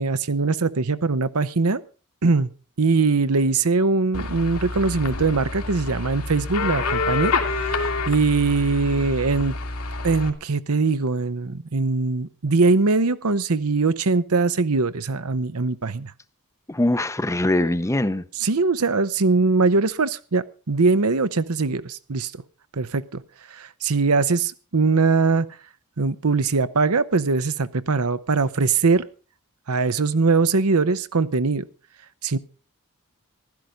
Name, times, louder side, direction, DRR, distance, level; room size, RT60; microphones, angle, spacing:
voice 1, 0.0-1.8 2.2-2.5 2.8-9.5 10.0-16.1 18.4-22.4 22.8-23.2 23.5-25.5 26.0-29.1 29.7-31.6 32.2-32.4, right 4 dB, 75° right, 0.9 m, -21 dB
sound 1, 4.1-10.3, left 3 dB, 75° left, 2.3 m, -27 dB
voice 2, 16.7-18.2, left 1 dB, 15° left, 0.7 m, -22 dB
15.5 x 12.0 x 5.1 m
head